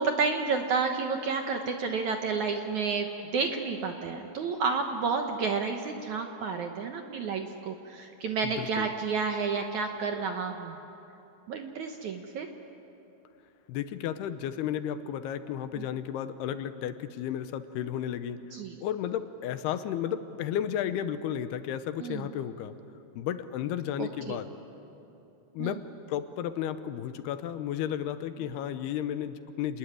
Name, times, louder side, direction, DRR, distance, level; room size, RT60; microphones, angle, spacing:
voice 1, 0.0-3.1 3.3-10.8 11.5-12.5 18.5-18.8 22.0-22.3 24.0-24.4 25.6-25.7, right 5 dB, 65° right, 4 dB, 1.9 m, -30 dB
voice 2, 8.4-8.9 13.7-18.4 18.8-22.8 23.2-24.5 25.5-25.8 26.1-29.8, left 10 dB, 85° left, 11 dB, 2.8 m, -33 dB
28.0 x 20.0 x 10.0 m, 3.0 s
omnidirectional pair, 4.7 m